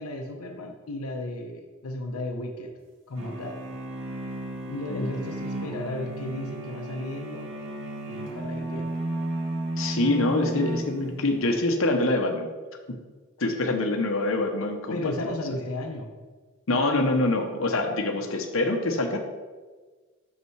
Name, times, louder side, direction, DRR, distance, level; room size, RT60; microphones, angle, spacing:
voice 1, 0.0-2.7 3.1-3.6 4.7-7.5 8.1-8.9 14.9-16.1, left 1 dB, 85° left, 2 dB, 0.8 m, -34 dB
sound 1, 3.2-11.5, right 2 dB, 60° right, 1.1 m, -33 dB
voice 2, 4.9-5.2 9.8-12.5 13.4-15.3 16.7-19.2, left 2 dB, 65° left, 3 dB, 0.9 m, -25 dB
6.7 x 5.6 x 4.6 m, 1.4 s
head